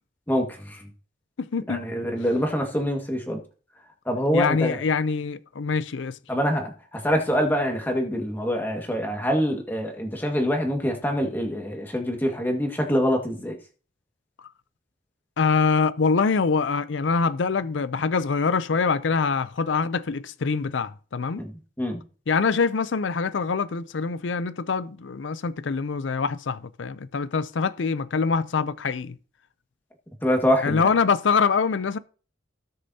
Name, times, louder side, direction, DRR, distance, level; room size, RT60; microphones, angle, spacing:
voice 1, 0.3-0.9 1.7-3.4 4.1-4.8 6.3-13.6 21.4-21.5 21.8-22.0 30.2-30.9, equal, 10° left, 1.8 m, -25 dB
voice 2, 1.4-1.9 4.3-6.2 15.4-21.4 22.3-29.2 30.6-32.0, left 5 dB, 75° left, 0.5 m, -24 dB
18.5 x 6.7 x 2.8 m
head